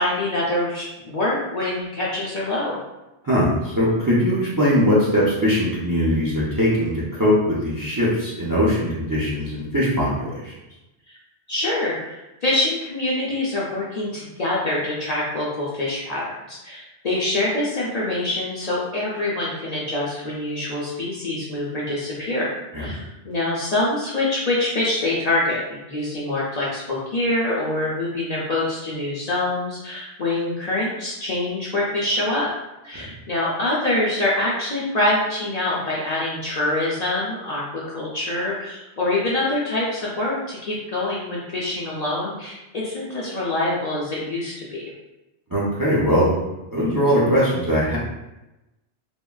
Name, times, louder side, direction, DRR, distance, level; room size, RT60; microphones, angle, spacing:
voice 1, 0.0-2.7 11.5-22.5 22.8-25.6 25.9-32.5 32.8-44.8, left 2 dB, 55° left, -6 dB, 0.5 m, -25 dB
voice 2, 3.2-10.5 22.7-22.9 32.9-33.0 45.5-46.3 46.7-48.0, equal, 30° right, -7 dB, 0.4 m, -20 dB
3.5 x 2.1 x 2.3 m, 0.99 s
omnidirectional pair, 1.1 m